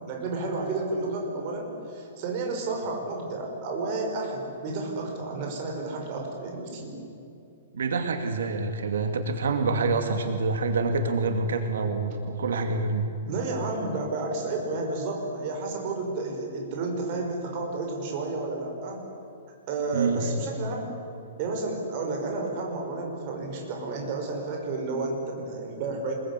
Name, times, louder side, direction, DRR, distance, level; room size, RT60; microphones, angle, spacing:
voice 1, 0.0-7.0 13.3-19.1 19.7-20.9 21.4-26.1, right 3 dB, 30° right, 1 dB, 5.5 m, -31 dB
voice 2, 7.7-13.1 19.9-20.3, right 3 dB, 85° right, 6 dB, 2.5 m, -26 dB
25.0 x 22.5 x 9.9 m, 2.7 s
hypercardioid pair, 175°, 0 cm